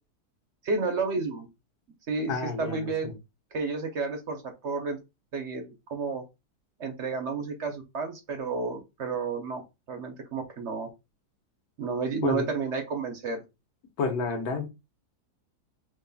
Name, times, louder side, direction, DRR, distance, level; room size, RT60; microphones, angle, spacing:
voice 1, 0.6-1.5 2.1-3.1 3.5-5.0 5.3-6.2 6.8-9.6 9.9-10.9 11.8-13.4, right 4 dB, 55° right, 4 dB, 1.0 m, -31 dB
voice 2, 2.3-3.1 12.2-12.5 14.0-14.7, left 4 dB, 75° left, 4 dB, 1.5 m, -30 dB
5.3 x 3.3 x 2.3 m, 0.24 s
omnidirectional pair, 1.7 m